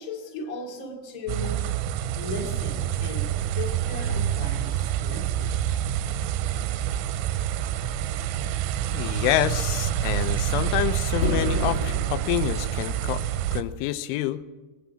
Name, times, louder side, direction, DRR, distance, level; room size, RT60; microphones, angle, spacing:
voice 1, 0.0-1.8 2.1-5.6, left 3 dB, 35° left, 0 dB, 1.5 m, -37 dB
sound 1, 1.3-13.6, right 10 dB, 90° right, 3.1 m, -27 dB
voice 2, 8.9-13.2 13.5-14.4, left 13 dB, 85° left, 11 dB, 3.2 m, -27 dB
sound 2, 11.2-13.5, equal, 60° left, 2.8 m, -31 dB
23.5 x 9.2 x 6.3 m, 1.3 s
omnidirectional pair, 5.4 m